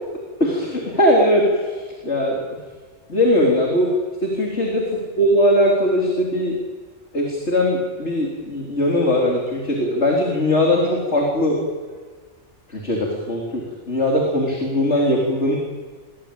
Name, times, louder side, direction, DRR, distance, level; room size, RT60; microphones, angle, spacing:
voice 1, 0.4-2.4 3.1-3.9 4.2-6.6 7.1-11.6 11.9-12.0 12.7-15.6, left 1 dB, 70° left, -1 dB, 4.2 m, -20 dB
28.0 x 22.5 x 8.9 m, 1.5 s
omnidirectional pair, 1.2 m